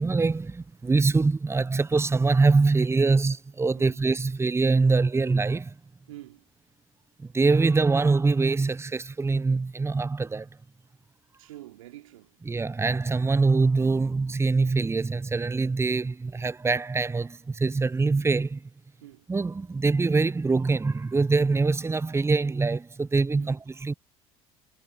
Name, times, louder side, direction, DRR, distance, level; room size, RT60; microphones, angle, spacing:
voice 1, 0.0-5.7 7.2-10.5 12.5-18.7 19.3-23.9, right 3 dB, 15° right, 0.9 m, -24 dB
voice 2, 6.1-6.4 11.4-12.4 19.0-19.3 23.3-23.6, right 15 dB, 75° right, 2.9 m, -46 dB
figure-of-eight pair, 65°, 17 cm